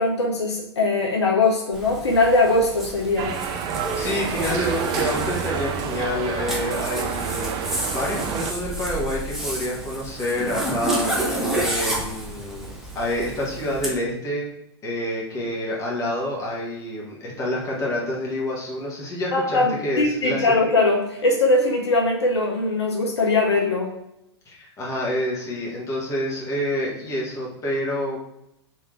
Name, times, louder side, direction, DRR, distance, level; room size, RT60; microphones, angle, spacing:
voice 1, 0.0-3.4 19.3-23.9, left 2 dB, 75° left, -1 dB, 0.8 m, -21 dB
Zipper (clothing), 1.7-13.9, right 1 dB, 5° right, 0.7 m, -30 dB
sound 1, 3.2-8.5, right 8 dB, 30° right, 0.4 m, -29 dB
voice 2, 3.9-7.6 7.9-14.5 14.8-20.5 24.5-28.2, left 1 dB, 20° left, -4 dB, 1.3 m, -28 dB
3.5 x 3.1 x 3.2 m, 0.82 s
figure-of-eight pair, 100°, 14 cm